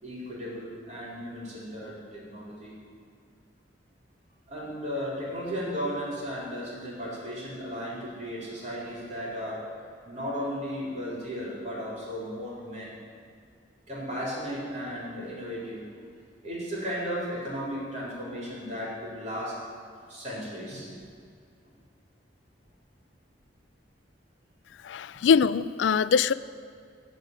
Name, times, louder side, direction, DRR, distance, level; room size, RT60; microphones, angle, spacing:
voice 1, 0.0-2.7 4.5-9.6 10.0-13.0 13.9-15.8 16.4-19.6 20.1-20.9, equal, 40° right, -6 dB, 4.0 m, -35 dB
voice 2, 24.8-26.3, left 6 dB, 80° left, 16 dB, 0.4 m, -22 dB
14.5 x 5.2 x 9.3 m, 2.2 s
head